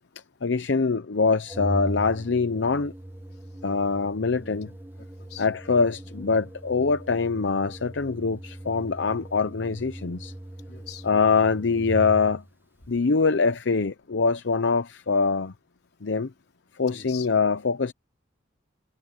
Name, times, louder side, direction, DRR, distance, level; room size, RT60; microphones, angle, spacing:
voice 1, 0.4-2.9 3.6-4.7 5.4-10.3 11.0-12.4 12.9-15.5 16.0-16.3 16.8-17.9, left 4 dB, 75° left, 0.7 m, -24 dB
Organ, 1.5-12.5, right 1 dB, 10° right, 0.4 m, -39 dB
voice 2, 4.4-5.5 10.7-11.1 12.8-12.9 16.9-17.3, left 8 dB, 55° left, 4.7 m, -45 dB
head